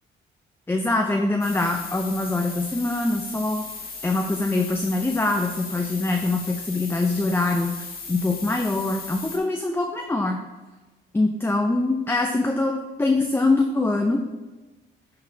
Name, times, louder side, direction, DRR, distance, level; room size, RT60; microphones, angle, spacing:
voice 1, 0.7-3.7 4.0-10.4 11.1-14.2, left 2 dB, 10° left, 2 dB, 0.5 m, -24 dB
sound 1, 1.4-9.4, left 4 dB, 50° left, 1.5 m, -37 dB
12.0 x 4.0 x 2.7 m, 1.2 s
cardioid pair, 90°, 20 cm